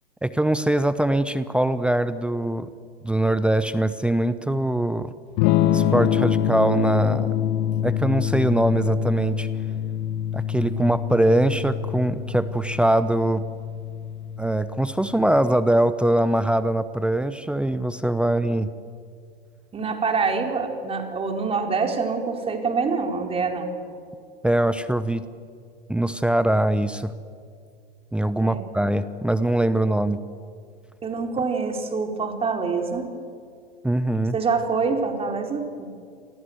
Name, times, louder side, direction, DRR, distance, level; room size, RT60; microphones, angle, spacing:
voice 1, 0.2-2.7 3.0-5.1 5.7-7.3 7.8-9.5 10.3-13.4 14.4-18.7 24.4-25.2 25.9-27.1 28.1-30.2 33.8-34.4, right 1 dB, 5° right, 14 dB, 0.8 m, -22 dB
Electric guitar / Strum, 5.4-15.1, left 10 dB, 45° left, 1.6 m, -25 dB
voice 2, 19.7-23.8 28.4-28.6 31.0-33.1 34.3-35.9, right 4 dB, 20° right, 3 dB, 4.2 m, -25 dB
28.5 x 24.0 x 8.0 m, 2.2 s
figure-of-eight pair, 105°, 31 cm